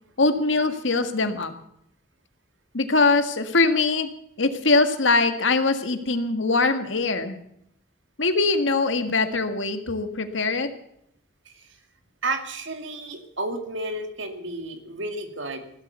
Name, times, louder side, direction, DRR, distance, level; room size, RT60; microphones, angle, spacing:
voice 1, 0.2-1.5 2.7-4.1 4.4-7.4 8.2-10.7, left 3 dB, 80° left, 8 dB, 1.7 m, -22 dB
voice 2, 11.5-11.8 12.2-15.7, right 2 dB, 80° right, 6 dB, 2.3 m, -32 dB
16.0 x 12.5 x 6.8 m, 0.75 s
head